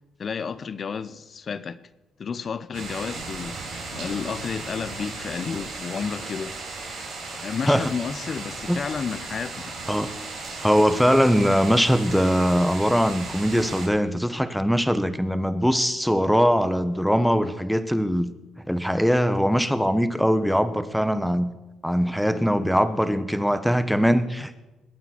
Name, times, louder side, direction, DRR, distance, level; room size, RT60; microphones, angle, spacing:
voice 1, 0.2-1.8 2.2-6.6 7.4-9.8, left 6 dB, 45° left, 0.8 m, -31 dB
sound 1, 2.7-13.9, right 3 dB, 85° right, 6.4 m, -36 dB
voice 2, 10.6-18.3 18.7-21.5 21.8-24.6, equal, ahead, 1.1 m, -21 dB
21.0 x 8.9 x 6.1 m
cardioid pair, 90°, 0 cm